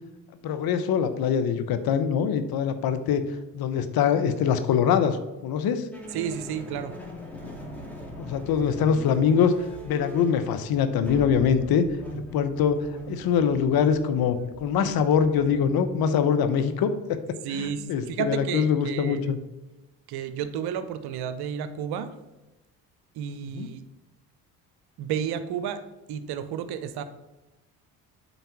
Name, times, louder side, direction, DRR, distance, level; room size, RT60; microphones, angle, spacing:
voice 1, 0.4-3.2 3.5-5.2 5.4-5.8 8.2-9.5 9.8-11.8 12.1-12.8 13.1-17.2 17.5-19.4 23.5-23.7, left 7 dB, 60° left, 10 dB, 0.9 m, -23 dB
sound 1, 5.9-16.0, equal, 5° left, 2.1 m, -41 dB
voice 2, 6.1-6.9 17.4-19.3 20.1-22.1 23.1-23.8 25.0-25.8 26.1-27.0, right 8 dB, 65° right, 12 dB, 0.8 m, -31 dB
8.1 x 4.0 x 5.9 m, 1.0 s
hypercardioid pair, 60°, 41 cm